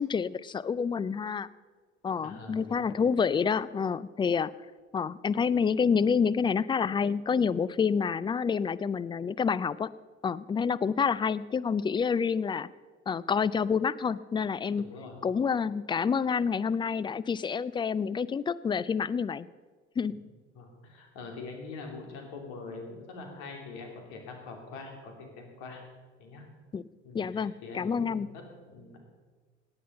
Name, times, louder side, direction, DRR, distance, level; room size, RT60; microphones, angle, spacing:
voice 1, 0.0-1.5 2.0-4.5 4.9-9.9 10.2-12.7 13.1-14.8 15.2-19.5 20.0-20.2 26.7-26.8 27.1-28.3, left 6 dB, 15° left, 19 dB, 0.3 m, -28 dB
voice 2, 2.2-3.1 14.9-15.2 20.5-25.8 26.2-26.5 27.0-29.0, left 3 dB, 65° left, 3 dB, 3.0 m, -44 dB
17.5 x 9.8 x 5.5 m, 1.4 s
figure-of-eight pair, 60°, 34 cm